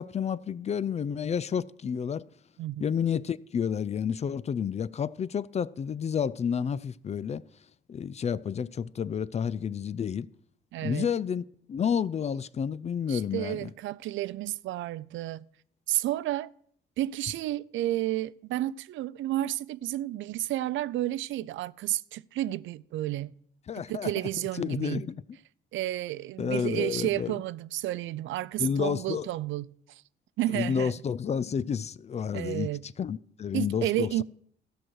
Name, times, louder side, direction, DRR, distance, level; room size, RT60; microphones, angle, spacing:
voice 1, 0.0-2.2 2.8-7.4 7.9-10.3 10.8-13.7 23.7-24.1 24.6-25.2 26.4-27.4 28.6-29.3 30.5-34.2, left 7 dB, 35° left, 0.4 m, -30 dB
voice 2, 2.6-2.9 10.7-11.1 13.1-15.4 15.9-16.5 17.0-23.3 23.9-25.0 25.7-30.0 30.4-30.9 32.3-32.8 33.5-34.2, right 14 dB, 75° right, 0.4 m, -31 dB
13.5 x 6.1 x 6.3 m
cardioid pair, 90°, 20 cm